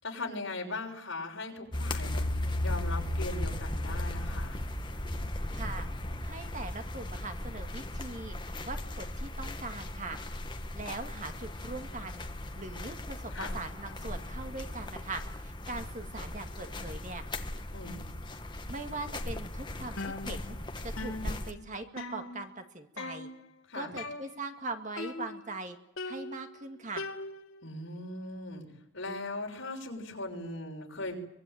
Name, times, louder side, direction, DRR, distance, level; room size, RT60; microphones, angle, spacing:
voice 1, 0.0-4.6 13.3-13.6 17.7-18.1 23.7-24.0 27.6-28.6 28.9-31.2, left 2 dB, 65° left, 1 dB, 6.4 m, -39 dB
Thunder, 1.6-9.2 9.7-9.8, equal, 20° right, 5.6 m, -44 dB
sound 1, 1.7-21.5, left 1 dB, 20° left, 1.5 m, -37 dB
voice 2, 5.5-5.9 6.2-8.4 8.7-10.2 10.7-12.3 12.6-17.2 18.7-20.6 20.8-23.3 23.7-25.8 26.0-27.1, right 2 dB, 40° right, 6 dB, 2.1 m, -41 dB
sound 2, 20.0-20.7 21.0-22.7 23.0-23.5 24.0-24.6 25.0-25.6 26.0-27.7, left 2 dB, 85° left, 2.0 m, -41 dB
24.0 x 22.5 x 9.3 m, 0.84 s
head